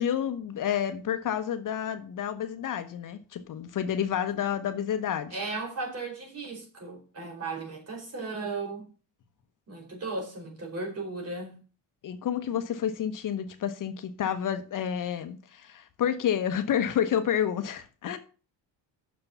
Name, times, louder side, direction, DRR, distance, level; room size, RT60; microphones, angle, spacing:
voice 1, 0.0-5.3 12.0-18.2, left 9 dB, 45° left, 1.0 m, -29 dB
voice 2, 5.3-8.9 9.7-11.6, right 3 dB, 35° right, 4.5 m, -36 dB
6.8 x 6.7 x 7.1 m
cardioid pair, 125°, 44 cm